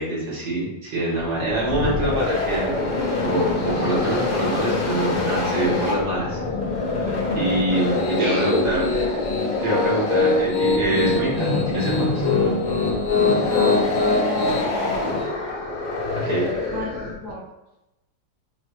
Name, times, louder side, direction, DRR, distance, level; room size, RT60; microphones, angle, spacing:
voice 1, 0.0-2.7 3.2-6.4 7.3-8.8 9.6-12.3 16.2-16.4, right 1 dB, 80° right, -7 dB, 2.2 m, -25 dB
sound 1, 1.2-17.3, left 3 dB, 35° left, 0.8 m, -26 dB
Piano, 7.8-14.6, left 3 dB, 85° left, 1.4 m, -23 dB
voice 2, 8.2-9.2 13.4-15.1 16.2-17.4, equal, 30° right, -7 dB, 1.3 m, -30 dB
5.5 x 2.2 x 3.0 m, 0.93 s
omnidirectional pair, 1.9 m